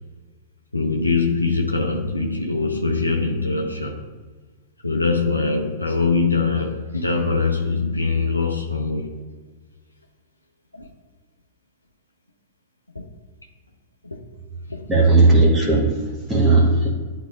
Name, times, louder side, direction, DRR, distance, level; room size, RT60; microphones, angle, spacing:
voice 1, 0.7-4.0 4.8-9.1 10.7-10.9 12.9-13.0 14.1-14.2 14.7-14.8, left 4 dB, 85° left, 1 dB, 0.6 m, -22 dB
voice 2, 14.9-16.9, right 2 dB, 15° right, -5 dB, 1.2 m, -16 dB
11.0 x 3.9 x 2.4 m, 1.4 s
figure-of-eight pair, 100°, 0 cm